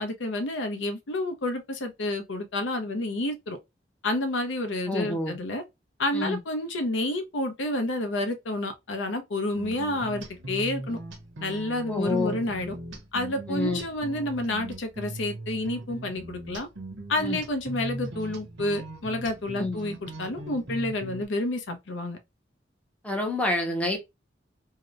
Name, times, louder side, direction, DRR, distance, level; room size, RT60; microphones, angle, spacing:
voice 1, 0.0-3.6 4.0-5.6 6.0-11.0 11.4-12.7 13.1-16.7 17.1-22.2, left 1 dB, 80° left, 0.6 m, -29 dB
voice 2, 4.9-5.4 6.1-6.4 11.9-12.4 13.5-13.8 17.2-17.4 19.6-19.8 23.0-24.0, left 2 dB, 5° left, 0.5 m, -28 dB
sound 1, 9.6-21.3, right 2 dB, 80° right, 0.8 m, -39 dB
2.8 x 2.0 x 2.4 m
head